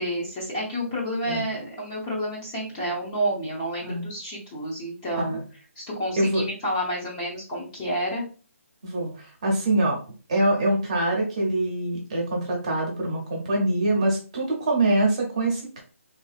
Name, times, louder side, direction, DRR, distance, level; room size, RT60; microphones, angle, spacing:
voice 1, 0.0-5.4 5.8-8.3, equal, 15° left, -4 dB, 0.8 m, -29 dB
voice 2, 8.8-10.0 10.3-15.8, right 1 dB, 25° right, -1 dB, 0.8 m, -24 dB
3.6 x 2.6 x 2.4 m, 0.37 s
hypercardioid pair, 175°, 8 cm